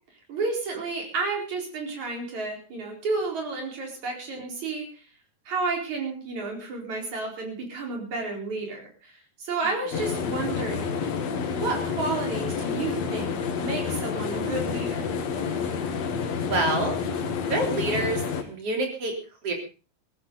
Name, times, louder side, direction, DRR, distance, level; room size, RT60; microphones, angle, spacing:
voice 1, 0.3-5.0 5.5-11.1 11.5-15.0, right 3 dB, 60° right, 0 dB, 5.9 m, -31 dB
sound 1, 9.9-18.4, left 6 dB, 60° left, 2.6 m, -29 dB
voice 2, 16.4-17.0 17.5-19.1 19.4-19.5, right 2 dB, 45° right, 2 dB, 4.5 m, -27 dB
18.0 x 14.5 x 4.0 m, 0.34 s
omnidirectional pair, 3.7 m